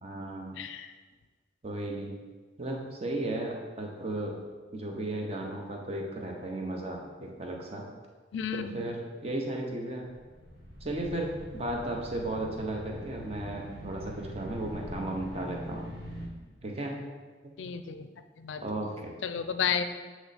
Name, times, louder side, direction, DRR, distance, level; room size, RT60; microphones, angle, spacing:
voice 1, 0.0-0.6 1.6-2.2 2.6-4.4 4.7-7.8 8.5-10.1 10.8-15.9 16.6-17.0 18.6-19.1, right 1 dB, 35° right, 0 dB, 0.8 m, -35 dB
voice 2, 0.6-0.9 8.3-8.7 17.6-18.1 18.4-18.6 19.2-19.8, left 7 dB, 90° left, 10 dB, 0.4 m, -32 dB
sound 1, 10.1-16.3, equal, 60° right, 1.5 m, -43 dB
7.6 x 3.1 x 4.1 m, 1.4 s
head